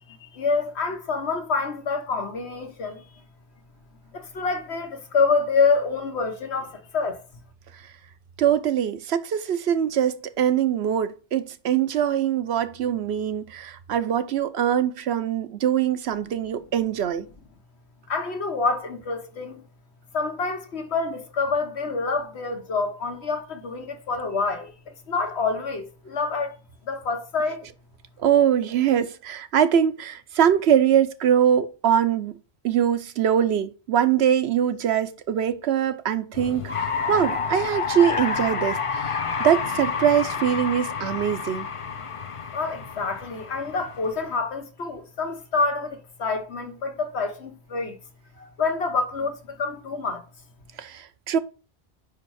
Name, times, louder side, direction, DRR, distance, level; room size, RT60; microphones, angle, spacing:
voice 1, 0.1-3.0 4.1-7.2 18.1-19.6 20.1-24.7 25.1-26.6 26.8-27.6 42.5-48.0 48.4-50.2, left 4 dB, 80° left, 1.4 m, -27 dB
voice 2, 8.4-17.3 28.2-32.3 32.6-41.7 50.8-51.4, right 9 dB, 80° right, 0.9 m, -23 dB
sound 1, 36.3-44.3, left 5 dB, 40° left, 0.5 m, -29 dB
5.3 x 4.8 x 4.7 m
omnidirectional pair, 1.1 m